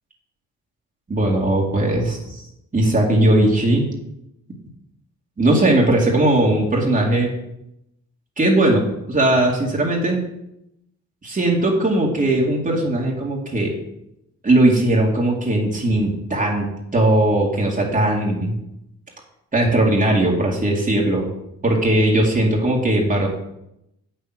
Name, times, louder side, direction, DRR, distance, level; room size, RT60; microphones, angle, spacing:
voice 1, 1.1-2.4 2.7-3.9 5.4-7.3 8.4-10.2 11.2-13.7 14.4-18.5 19.5-21.3 21.6-23.3, right 1 dB, 25° right, -2 dB, 2.3 m, -18 dB
8.0 x 6.8 x 6.0 m, 0.83 s
cardioid pair, 90°, 30 cm